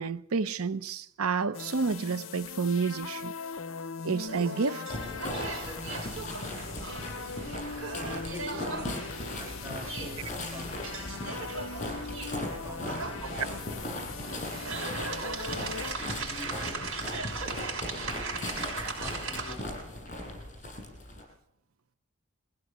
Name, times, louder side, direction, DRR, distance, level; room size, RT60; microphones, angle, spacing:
voice 1, 0.0-3.3 4.0-4.8 5.8-5.9 13.3-13.4, right 5 dB, 85° right, 0.7 m, -30 dB
sound 1, 1.5-15.9, left 5 dB, 65° left, 0.7 m, -41 dB
sound 2, 4.3-19.5, right 4 dB, 70° right, 6.2 m, -39 dB
sound 3, 4.9-21.2, left 1 dB, 35° left, 6.8 m, -38 dB
voice 2, 7.9-11.5 12.5-15.4 15.9-18.5 19.0-19.9, left 1 dB, 10° right, 3.0 m, -48 dB
22.5 x 16.0 x 8.0 m
head